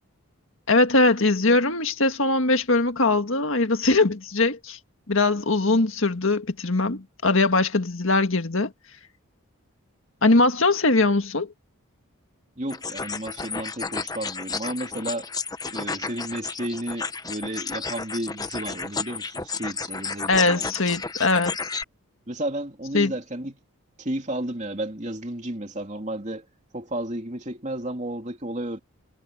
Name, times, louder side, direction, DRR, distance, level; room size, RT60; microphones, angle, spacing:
voice 1, 0.7-4.8 5.1-8.7 10.2-11.5 20.3-21.6 22.9-23.1, left 3 dB, 65° left, 1.8 m, -21 dB
voice 2, 12.6-15.3 15.7-20.7 21.0-21.1 22.3-23.6 24.0-26.5 26.7-28.8, right 1 dB, 35° right, 2.9 m, -32 dB
sound 1, 12.7-21.8, left 4 dB, 15° left, 0.8 m, -32 dB
head